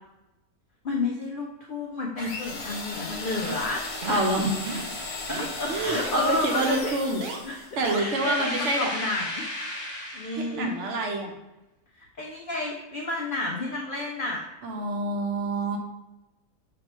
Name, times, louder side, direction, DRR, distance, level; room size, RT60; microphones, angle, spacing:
voice 1, 0.8-4.2 5.3-7.0 7.4-7.6 7.9-9.5 10.1-10.7 11.9-14.4, left 2 dB, 75° left, -1 dB, 0.4 m, -31 dB
sound 1, 2.2-7.8, left 3 dB, 50° left, 0.9 m, -36 dB
sound 2, 3.4-3.7 4.0-4.3 4.6-5.0 5.3-5.5 5.9-6.1 6.6-6.7 7.2-7.4 7.8-8.0, right 4 dB, 90° right, 0.4 m, -35 dB
voice 2, 4.0-4.5 5.7-7.2 7.8-8.9 10.4-11.3 14.6-15.8, right 2 dB, 60° right, 3 dB, 0.9 m, -27 dB
sound 3, 8.0-10.7, left 1 dB, 20° left, 0.8 m, -34 dB
5.1 x 3.0 x 3.0 m, 0.98 s
omnidirectional pair, 1.6 m